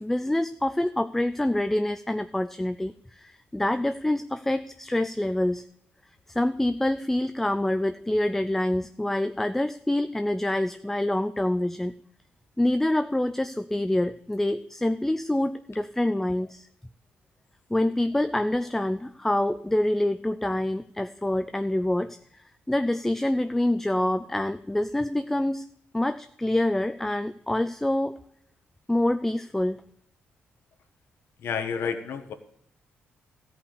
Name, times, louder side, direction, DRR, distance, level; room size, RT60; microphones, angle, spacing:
voice 1, 0.0-5.6 6.3-11.9 12.6-16.7 17.7-22.2 22.7-25.6 25.9-28.2 28.9-29.8, left 1 dB, 5° left, 10 dB, 0.4 m, -26 dB
voice 2, 31.4-32.3, left 6 dB, 70° left, 7 dB, 1.3 m, -30 dB
14.0 x 5.5 x 6.5 m, 0.71 s
cardioid pair, 105°, 4 cm